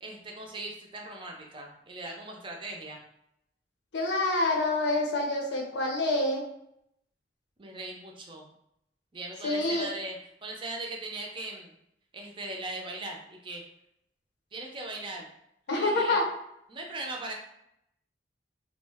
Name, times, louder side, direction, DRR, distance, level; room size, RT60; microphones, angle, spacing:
voice 1, 0.0-3.0 7.6-8.5 9.1-10.2 10.4-11.7 12.1-13.6 14.5-15.3 15.7-16.2 16.7-17.3, right 2 dB, 30° right, 1 dB, 0.4 m, -39 dB
voice 2, 3.9-6.4 9.4-9.9 15.7-16.3, left 2 dB, 80° left, 0 dB, 0.7 m, -27 dB
2.3 x 2.1 x 3.4 m, 0.77 s
head